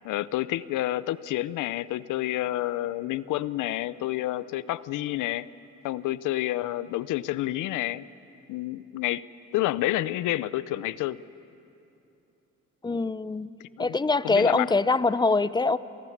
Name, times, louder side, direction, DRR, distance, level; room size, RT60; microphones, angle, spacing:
voice 1, 0.0-5.5 5.8-8.1 8.5-9.2 9.5-11.2 13.8-14.0 14.2-14.7, left 15 dB, 85° left, 17 dB, 0.6 m, -29 dB
voice 2, 12.8-13.5 13.8-15.8, left 3 dB, 15° left, 16 dB, 0.7 m, -23 dB
30.0 x 27.0 x 7.3 m, 2.8 s
cardioid pair, 90°, 30 cm